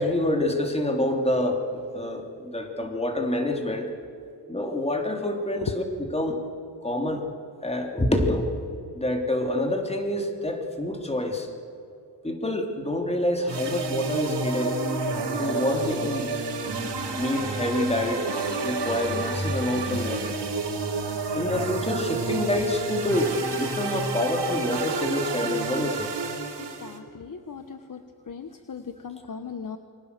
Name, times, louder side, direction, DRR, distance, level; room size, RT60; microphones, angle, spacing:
voice 1, 0.0-1.6 1.9-3.9 4.5-6.4 6.8-7.2 7.6-8.5 8.9-11.5 12.2-14.8 15.4-16.3 17.2-20.4 21.3-26.1, left 1 dB, 15° left, 2 dB, 3.4 m, -27 dB
sound 1, 13.5-27.0, right 3 dB, 65° right, 4.0 m, -30 dB
voice 2, 26.8-28.0 28.3-29.8, left 6 dB, 45° left, 7 dB, 1.3 m, -38 dB
28.0 x 25.0 x 6.9 m, 2.6 s
wide cardioid pair, 115°, 43 cm